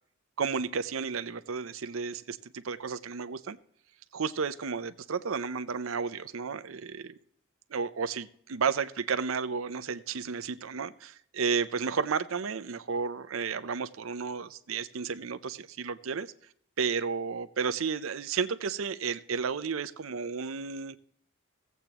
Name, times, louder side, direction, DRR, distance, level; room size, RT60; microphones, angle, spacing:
voice 1, 0.4-3.6 4.1-7.2 7.7-16.3 16.8-21.0, right 5 dB, 70° right, 13 dB, 0.6 m, -32 dB
16.5 x 8.1 x 2.9 m, 0.64 s
head